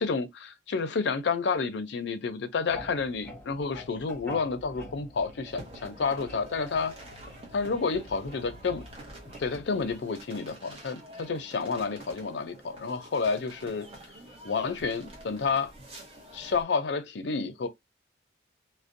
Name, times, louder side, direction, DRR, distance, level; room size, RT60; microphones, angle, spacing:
voice 1, 0.0-6.9 7.5-8.8 9.4-13.9 14.4-15.7 16.3-17.7, left 4 dB, 70° left, 0.4 m, -30 dB
sound 1, 2.7-10.0, left 2 dB, 10° left, 1.1 m, -47 dB
sound 2, 5.4-16.6, right 1 dB, 30° right, 0.8 m, -48 dB
2.5 x 2.0 x 2.5 m
head